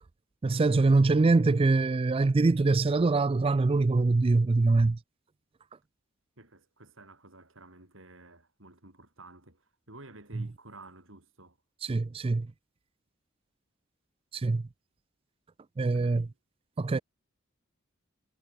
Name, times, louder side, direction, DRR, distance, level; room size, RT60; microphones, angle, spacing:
voice 1, 0.4-5.0 10.4-10.5 11.8-12.5 14.3-14.7 15.8-16.3 16.8-17.0, right 3 dB, 25° right, 0.4 m, -24 dB
voice 2, 6.4-11.6 15.8-16.3, right 2 dB, 65° right, 6.8 m, -52 dB
head